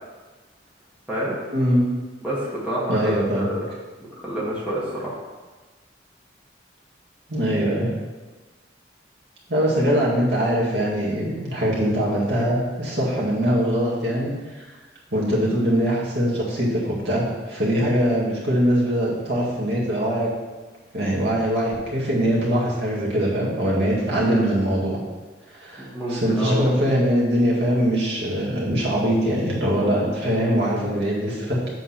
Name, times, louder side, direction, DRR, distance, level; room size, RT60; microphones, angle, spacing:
voice 1, 1.5-1.8 2.9-3.4 7.3-7.9 9.5-14.3 14.6-14.7 15.1-20.3 20.9-25.0 25.5-31.7, equal, 65° right, -5 dB, 1.8 m, -22 dB
voice 2, 2.2-3.6 4.2-5.2 24.1-24.4 25.8-26.7, right 1 dB, 5° right, -8 dB, 1.7 m, -28 dB
7.9 x 3.6 x 5.8 m, 1.3 s
head